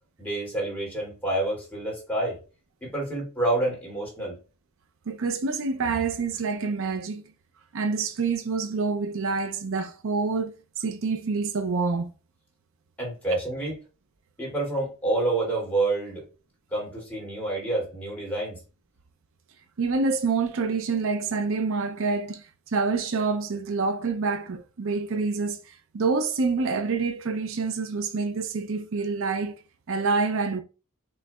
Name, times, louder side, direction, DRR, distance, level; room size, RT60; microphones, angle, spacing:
voice 1, 0.2-2.4 2.8-4.4 13.0-13.8 14.4-16.2 16.7-18.6, right 2 dB, 10° left, 2.4 m, -28 dB
voice 2, 5.1-7.2 7.7-10.5 10.8-12.1 19.8-29.5 29.9-30.6, right 4 dB, 65° right, 0.5 m, -27 dB
6.2 x 3.1 x 2.3 m
head